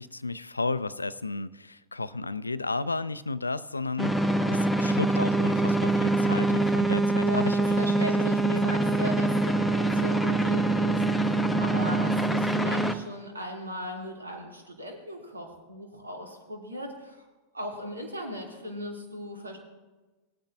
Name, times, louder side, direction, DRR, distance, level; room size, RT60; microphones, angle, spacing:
voice 1, 0.0-8.8, left 3 dB, 80° left, 18 dB, 0.4 m, -33 dB
sound 1, 4.0-12.9, right 2 dB, ahead, 0.9 m, -24 dB
voice 2, 7.2-17.3 17.5-19.6, equal, 75° right, 1 dB, 2.7 m, -37 dB
20.0 x 9.0 x 2.6 m, 1.2 s
figure-of-eight pair, 90°, 0 cm